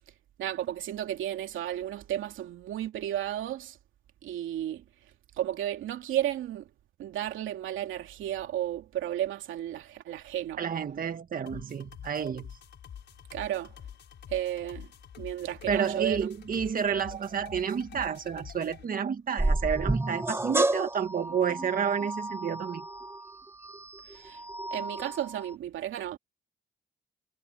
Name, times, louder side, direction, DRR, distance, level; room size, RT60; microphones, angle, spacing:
voice 1, 0.4-3.8 4.2-4.8 5.4-6.7 7.0-10.6 13.3-13.7 14.3-14.9 15.2-16.3 24.1-24.4 24.7-26.2, right 12 dB, 80° right, 2.8 m, -33 dB
voice 2, 10.6-12.5 15.7-22.8, right 7 dB, 45° right, 1.7 m, -30 dB
sound 1, 11.5-18.8, left 9 dB, 60° left, 5.4 m, -47 dB
sound 2, 19.4-25.5, right 2 dB, 10° right, 1.1 m, -31 dB
cardioid pair, 90°, 20 cm